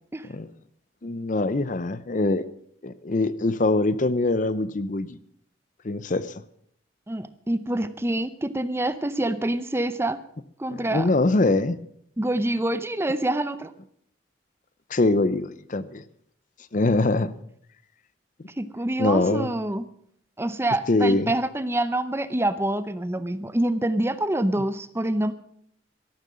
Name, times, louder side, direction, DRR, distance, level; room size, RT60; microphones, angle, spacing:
voice 1, 1.0-2.5 2.8-5.2 5.8-6.3 10.7-11.8 14.9-16.0 16.7-17.3 19.0-19.5 20.9-21.3, left 2 dB, 45° left, 16 dB, 0.6 m, -23 dB
voice 2, 7.1-10.2 10.6-11.1 12.2-13.7 18.6-19.9 20.4-25.3, right 1 dB, 15° right, 13 dB, 0.6 m, -26 dB
13.0 x 12.5 x 6.3 m, 0.66 s
head